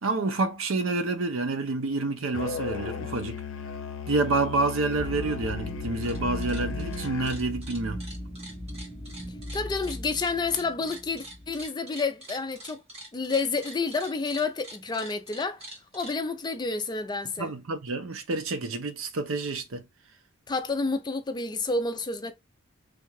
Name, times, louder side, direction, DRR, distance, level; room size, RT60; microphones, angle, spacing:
voice 1, 0.0-3.4 4.1-8.0 17.4-19.8, right 3 dB, 70° right, 0.7 m, -28 dB
Musical instrument, 2.3-7.5, left 6 dB, 70° left, 0.6 m, -36 dB
sound 1, 4.9-11.7, left 1 dB, 5° right, 0.7 m, -38 dB
sound 2, 5.8-6.2 6.4-16.1, right 1 dB, 30° right, 1.3 m, -45 dB
voice 2, 9.5-12.8 13.1-15.6 15.9-17.5 20.5-22.3, left 3 dB, 20° left, 0.4 m, -29 dB
3.3 x 2.4 x 3.1 m
head